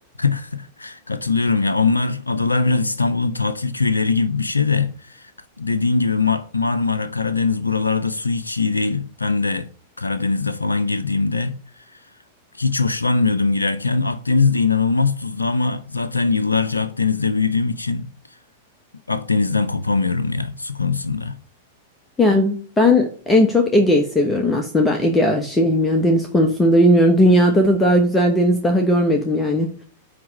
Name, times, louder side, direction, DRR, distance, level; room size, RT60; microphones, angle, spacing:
voice 1, 0.2-5.3 5.6-9.7 10.0-11.8 12.6-18.1 19.1-21.4, left 4 dB, 85° left, 0.5 m, -21 dB
voice 2, 22.2-29.8, left 1 dB, 15° left, 1.1 m, -17 dB
9.3 x 3.3 x 5.1 m
figure-of-eight pair, 95°, 0 cm